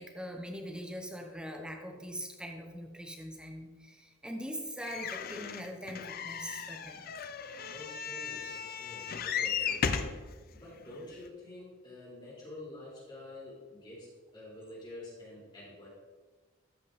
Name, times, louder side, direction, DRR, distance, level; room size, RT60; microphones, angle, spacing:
voice 1, 0.0-7.1, equal, 5° right, 3 dB, 0.9 m, -42 dB
sound 1, 4.8-10.2 10.9-11.0 11.3-11.4, left 7 dB, 45° left, 0.5 m, -36 dB
voice 2, 7.7-10.2 10.5-15.9, left 1 dB, 25° left, -6 dB, 2.9 m, -48 dB
13.5 x 5.2 x 3.6 m, 1.3 s
head